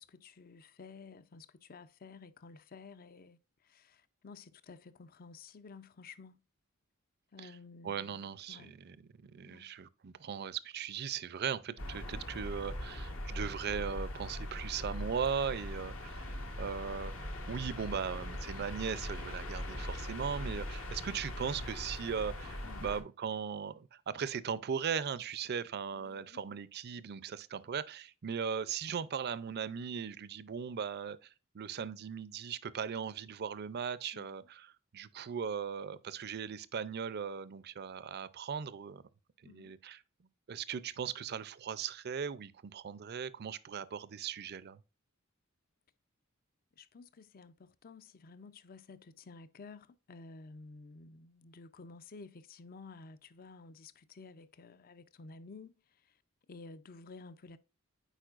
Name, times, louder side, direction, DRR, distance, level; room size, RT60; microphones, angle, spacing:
voice 1, 0.0-6.4 7.3-8.7 9.4-9.7 22.6-22.9 25.9-26.4 34.1-34.5 39.4-39.7 46.8-56.2 56.5-57.6, left 4 dB, 45° left, 0.5 m, -53 dB
voice 2, 7.8-9.0 9.2-39.0 39.4-40.0 40.5-44.8, right 7 dB, 50° right, 0.5 m, -38 dB
sound 1, 11.8-23.0, left 1 dB, 70° left, 1.4 m, -41 dB
9.1 x 4.5 x 2.4 m
head